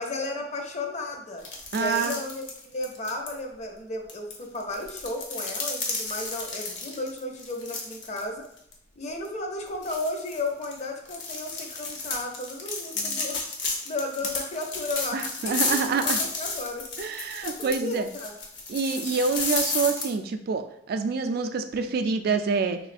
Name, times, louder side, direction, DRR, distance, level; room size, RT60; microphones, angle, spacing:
voice 1, 0.0-1.5 1.7-8.4 9.0-16.8 17.1-18.3, left 2 dB, 40° left, 3 dB, 0.5 m, -34 dB
sound 1, 1.4-3.3 4.1-8.2 8.6-8.7 9.2-9.3 9.8-20.1, left 3 dB, 75° left, 0.8 m, -32 dB
voice 2, 1.7-2.2 13.0-13.2 15.1-16.2 17.0-18.1 18.7-22.8, right 4 dB, 55° right, 8 dB, 0.3 m, -27 dB
3.4 x 3.0 x 2.5 m, 0.75 s
head